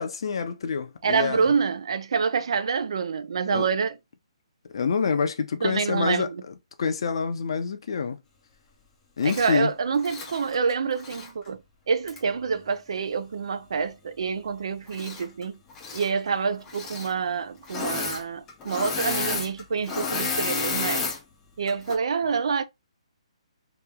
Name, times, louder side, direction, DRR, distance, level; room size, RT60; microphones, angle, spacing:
voice 1, 0.0-1.5 3.5-3.7 4.7-8.2 9.2-9.7, left 5 dB, 50° left, 0.7 m, -27 dB
voice 2, 1.0-4.0 5.6-6.4 9.2-11.6 11.9-15.5 15.9-21.1 21.6-22.6, right 5 dB, 55° right, 0.5 m, -27 dB
Engine / Mechanisms, 9.2-9.5 10.0-11.3 12.1-12.2 14.9-15.4 15.7-16.1 16.7-17.1 17.6-18.2 18.5-21.2 21.7-22.0, left 4 dB, 10° left, 0.6 m, -31 dB
3.0 x 2.9 x 3.5 m
hypercardioid pair, 175°, 3 cm